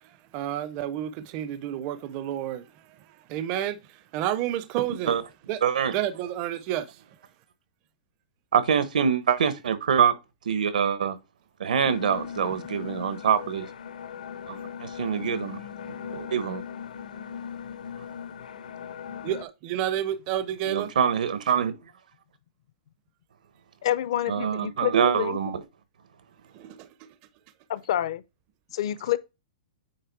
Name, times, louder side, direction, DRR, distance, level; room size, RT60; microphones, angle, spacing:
voice 1, 0.3-2.7 3.3-3.8 4.1-5.2 5.5-5.6 5.9-7.0 19.2-20.9 26.5-26.9, right 11 dB, 20° right, 0.4 m, -30 dB
voice 2, 5.6-5.9 8.5-10.1 10.4-11.2 11.6-13.7 14.5-15.6 15.9-16.6 20.7-21.7 24.3-25.6, right 7 dB, 85° right, 1.1 m, -25 dB
sound 1, 11.8-19.4, left 7 dB, 75° left, 0.9 m, -39 dB
voice 3, 23.8-25.5 27.7-28.2 28.7-29.2, left 12 dB, 40° left, 0.4 m, -28 dB
8.7 x 3.0 x 4.6 m
hypercardioid pair, 180°, 4 cm